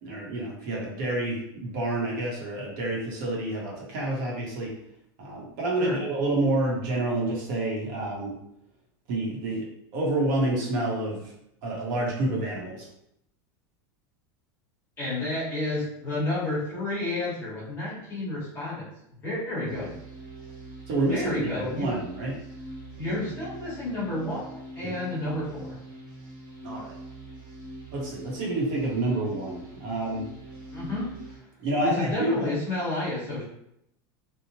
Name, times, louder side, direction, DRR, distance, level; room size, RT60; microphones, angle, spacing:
voice 1, 0.0-4.7 5.2-8.3 9.1-9.7 9.9-11.3 11.6-12.9 20.9-22.4 24.8-24.9 26.6-26.9 27.9-30.3 31.6-32.5, right 2 dB, 50° right, -3 dB, 0.8 m, -28 dB
voice 2, 15.0-18.9 19.2-19.9 21.1-21.9 23.0-25.8 30.7-31.1 31.8-33.4, left 2 dB, 15° left, -8 dB, 1.0 m, -30 dB
sound 1, 19.7-31.4, right 1 dB, 5° right, 1.1 m, -43 dB
2.9 x 2.0 x 2.7 m, 0.76 s
supercardioid pair, 180°, 13 cm